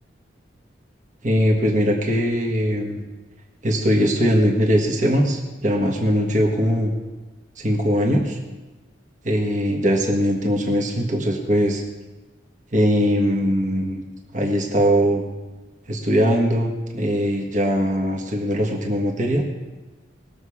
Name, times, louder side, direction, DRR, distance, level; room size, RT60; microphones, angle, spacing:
voice 1, 1.2-3.0 3.6-6.9 7.6-8.4 9.2-11.8 12.7-14.0 14.3-15.2 15.9-19.4, equal, 45° right, 0 dB, 1.5 m, -20 dB
20.0 x 7.1 x 4.9 m, 1.2 s
head